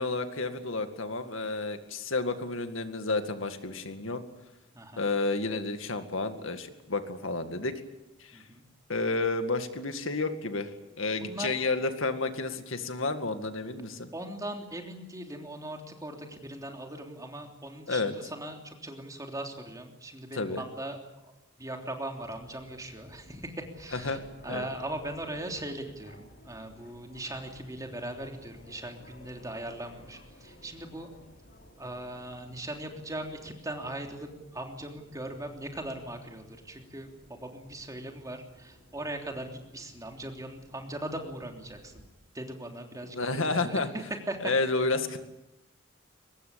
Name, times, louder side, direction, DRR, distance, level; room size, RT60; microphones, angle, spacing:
voice 1, 0.0-4.2 5.0-7.7 8.2-8.4 8.9-14.1 17.9-18.1 20.3-20.6 23.9-24.2 24.5-24.6 43.1-43.9 44.4-45.2, left 3 dB, 70° left, 8 dB, 2.1 m, -31 dB
voice 2, 4.7-5.1 8.3-8.6 11.2-11.6 14.1-21.0 21.6-24.2 24.4-31.1 31.8-42.0 42.3-43.8 44.3-44.5, right 1 dB, 15° right, 3 dB, 3.3 m, -39 dB
sound 1, 22.1-42.1, left 1 dB, 55° left, 4.9 m, -55 dB
23.5 x 20.0 x 8.8 m, 0.93 s
head